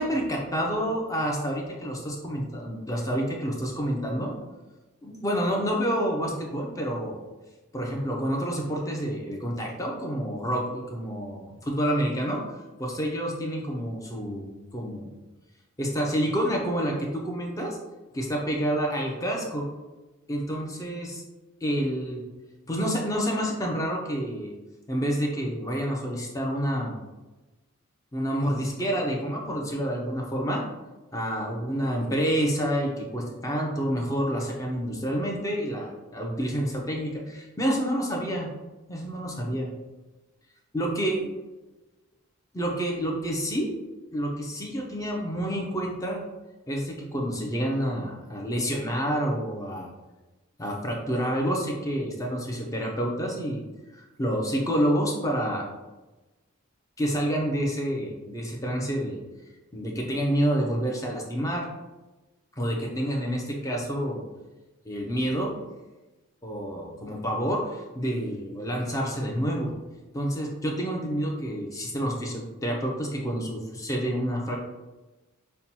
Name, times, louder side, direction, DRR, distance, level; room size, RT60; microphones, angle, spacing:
voice 1, 0.0-4.3 5.0-7.2 7.7-12.4 12.8-15.1 15.8-17.8 18.1-19.7 20.3-21.2 21.6-22.2 22.7-24.5 24.9-26.9 28.1-30.6 31.1-38.5 38.9-39.7 40.7-41.2 42.5-43.7 44.1-46.2 46.7-49.9 50.6-53.6 53.9-55.7 57.0-59.2 59.7-61.7 62.6-64.2 64.8-65.5 66.4-69.7 70.1-74.7, equal, 15° left, -1 dB, 0.5 m, -28 dB
5.6 x 2.2 x 2.8 m, 1.1 s
head